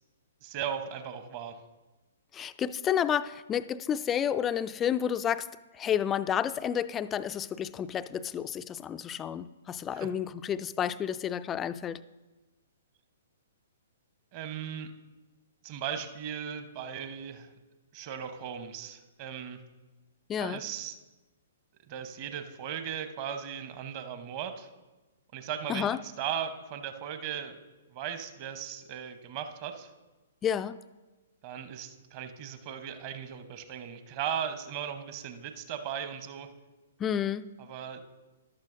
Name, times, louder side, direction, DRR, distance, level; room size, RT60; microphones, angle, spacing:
voice 1, 0.4-1.6 9.9-10.1 14.3-14.9 15.6-17.5 17.9-19.6 20.4-21.0 21.9-24.7 25.3-27.6 27.9-29.9 31.4-36.5 37.6-38.0, right 8 dB, 35° right, 8 dB, 1.0 m, -37 dB
voice 2, 2.3-5.5 5.8-12.0 20.3-20.6 25.7-26.0 30.4-30.8 37.0-37.5, left 9 dB, 20° left, 14 dB, 0.3 m, -30 dB
14.0 x 12.0 x 2.6 m, 1.2 s
figure-of-eight pair, 120°, 0 cm